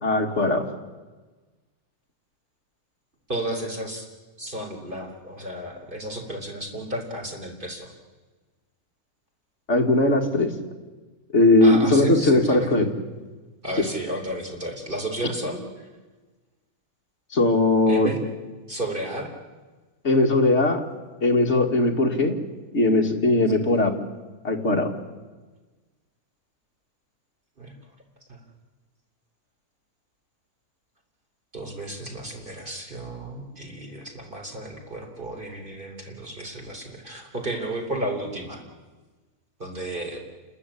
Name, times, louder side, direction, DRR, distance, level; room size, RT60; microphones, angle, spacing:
voice 1, 0.0-0.7 9.7-10.5 11.3-12.9 17.3-18.1 20.0-20.8 21.2-22.4 22.7-24.0 24.4-24.9, left 2 dB, 45° left, 2 dB, 2.5 m, -19 dB
voice 2, 3.3-4.1 4.4-7.9 11.6-12.7 13.6-15.9 17.9-18.2 18.7-19.3 23.5-23.7 27.6-27.8 28.3-28.4 31.5-38.6 39.6-40.2, right 1 dB, 35° right, 2 dB, 3.8 m, -33 dB
29.0 x 14.0 x 10.0 m, 1.3 s
omnidirectional pair, 1.6 m